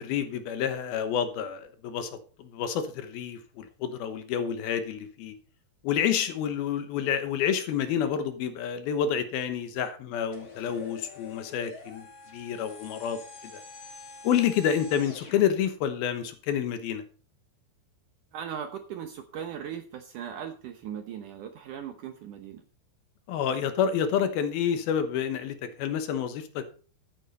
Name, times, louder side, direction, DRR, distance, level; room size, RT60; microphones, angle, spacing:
voice 1, 0.0-2.1 2.4-5.4 5.8-12.1 12.3-13.6 14.2-17.0 23.3-26.7, left 8 dB, 70° left, 9 dB, 2.8 m, -29 dB
sound 1, 10.3-15.4, left 3 dB, 45° left, 4.0 m, -47 dB
voice 2, 18.3-22.6, right 8 dB, 70° right, 6 dB, 2.1 m, -38 dB
14.0 x 9.1 x 4.2 m, 0.39 s
omnidirectional pair, 4.7 m